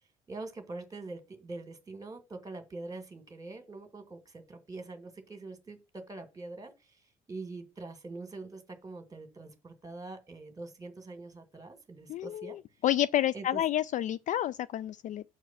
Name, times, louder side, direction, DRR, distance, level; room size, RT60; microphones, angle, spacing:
voice 1, 0.3-6.7 7.3-12.6 13.3-13.6, right 3 dB, 20° right, 2.1 m, -44 dB
voice 2, 12.1-15.2, left 12 dB, 45° left, 0.4 m, -30 dB
7.4 x 4.6 x 5.9 m
hypercardioid pair, 55°, 18 cm